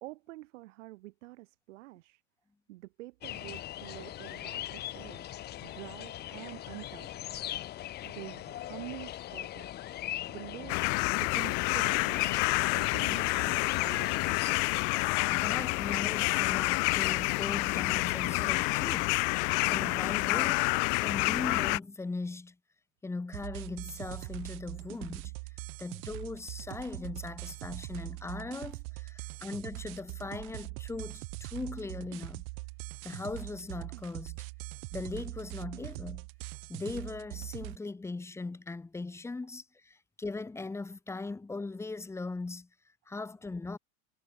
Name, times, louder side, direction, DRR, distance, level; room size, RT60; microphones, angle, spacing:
voice 1, 0.0-2.2 2.7-5.2 5.6-7.3 8.0-9.7 10.3-12.4 12.8-14.4, right 18 dB, 85° right, 1.7 m, -47 dB
sound 1, 3.2-14.6, left 13 dB, 25° left, 1.5 m, -40 dB
sound 2, 10.7-21.8, left 40 dB or more, 45° left, 0.6 m, -28 dB
voice 2, 15.3-19.2 19.7-20.7 21.0-22.6 23.0-25.3 25.8-32.4 33.0-34.4 34.9-36.3 36.7-42.7 43.1-43.8, left 3 dB, 5° left, 3.1 m, -39 dB
sound 3, 23.3-37.8, right 33 dB, 55° right, 1.7 m, -42 dB
supercardioid pair, 165°, 36 cm